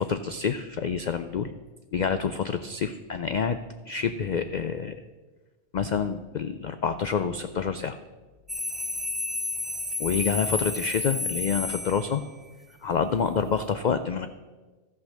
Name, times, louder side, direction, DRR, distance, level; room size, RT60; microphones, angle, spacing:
voice 1, 0.0-1.5 1.9-3.6 3.9-5.0 5.7-8.0 10.0-12.2 12.8-14.3, left 6 dB, 90° left, 10 dB, 0.4 m, -27 dB
sound 1, 8.5-12.5, left 2 dB, ahead, 0.4 m, -32 dB
14.0 x 6.0 x 6.4 m, 1.3 s
omnidirectional pair, 1.3 m